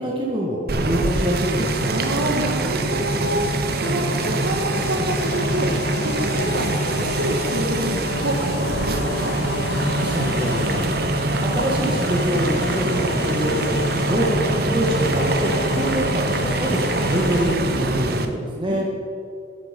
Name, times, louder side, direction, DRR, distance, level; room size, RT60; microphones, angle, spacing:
voice 1, 0.0-1.7 10.0-10.9 11.5-13.8 14.1-18.8, equal, 25° right, -2 dB, 1.6 m, -25 dB
sound 1, 0.7-18.3, right 2 dB, 55° right, 0.9 m, -24 dB
voice 2, 1.9-9.4 18.7-18.8, right 1 dB, 90° right, -2 dB, 1.5 m, -27 dB
sound 2, 3.8-17.6, left 5 dB, 60° left, 0.4 m, -31 dB
14.5 x 9.9 x 5.2 m, 2.5 s
head